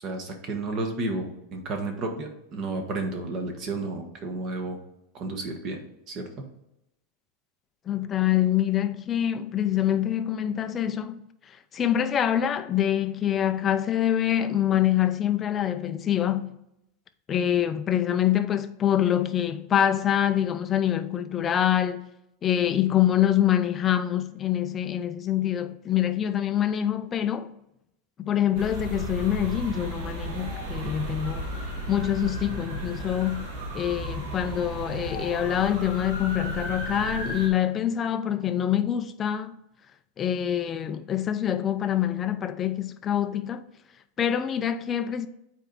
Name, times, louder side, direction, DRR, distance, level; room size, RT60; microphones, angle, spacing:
voice 1, 0.0-4.8 5.1-5.8 6.1-6.3, right 2 dB, 30° right, 1.3 m, -32 dB
voice 2, 7.9-11.2 11.7-16.6 17.3-22.0 22.4-27.5 28.2-31.5 31.9-33.5 33.7-39.6 40.2-43.6 44.2-45.3, left 10 dB, 20° left, 0.4 m, -25 dB
sound 1, 28.5-37.5, right 1 dB, 60° right, 2.5 m, -34 dB
8.2 x 4.5 x 4.0 m
supercardioid pair, 165°, 0 cm